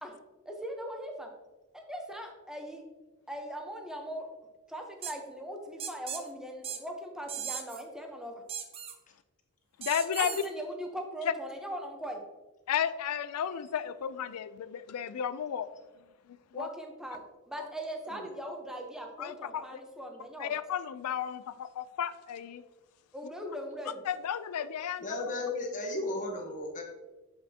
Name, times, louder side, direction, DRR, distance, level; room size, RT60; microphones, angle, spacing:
voice 1, 0.4-1.3 1.7-2.8 3.3-4.3 4.7-8.4 10.2-12.2 16.5-17.2 17.5-20.5 23.1-24.0, equal, 5° right, 2 dB, 0.8 m, -40 dB
sound 1, 5.0-5.1 5.8-6.2 6.6-6.8 7.3-7.8 8.5-8.9 9.8-10.5, right 8 dB, 25° right, 0.5 m, -37 dB
voice 2, 9.8-10.5 11.3-11.4 12.7-15.7 16.3-16.7 17.6-17.7 19.2-19.8 20.4-22.6 24.1-25.2, left 8 dB, 80° left, 14 dB, 0.4 m, -33 dB
voice 3, 25.0-26.8, left 2 dB, 35° left, 2 dB, 1.1 m, -35 dB
7.3 x 5.7 x 2.8 m, 1.1 s
head